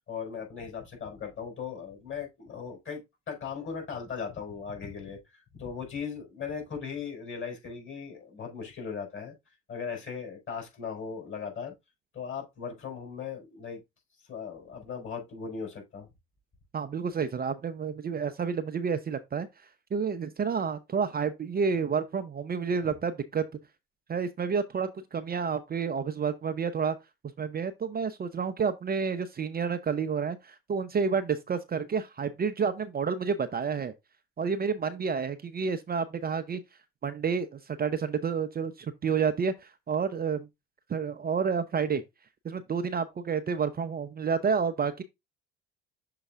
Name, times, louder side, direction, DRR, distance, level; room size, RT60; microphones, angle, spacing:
voice 1, 0.1-3.0 3.3-5.2 5.5-9.3 9.7-11.7 12.1-13.8 14.3-16.1, left 6 dB, 40° left, 4.7 m, -38 dB
voice 2, 16.7-19.5 19.9-23.4 24.1-27.0 27.4-33.9 34.4-36.6 37.0-40.5 40.9-42.0 42.4-45.0, right 6 dB, 30° right, 0.7 m, -30 dB
6.7 x 3.9 x 3.6 m
hypercardioid pair, 70°, 30 cm